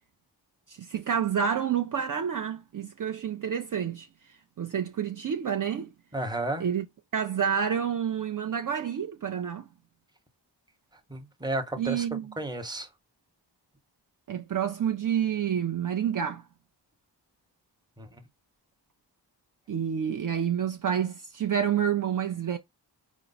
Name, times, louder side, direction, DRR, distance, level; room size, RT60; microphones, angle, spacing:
voice 1, 0.7-4.1 4.6-5.9 6.6-6.9 7.1-9.7 11.8-12.3 14.3-16.4 19.7-22.6, right 8 dB, 50° right, 0.5 m, -28 dB
voice 2, 6.1-6.6 11.1-12.0 12.4-12.9 18.0-18.1, right 1 dB, 10° right, 0.8 m, -32 dB
4.5 x 2.0 x 3.9 m
wide cardioid pair, 90°, 42 cm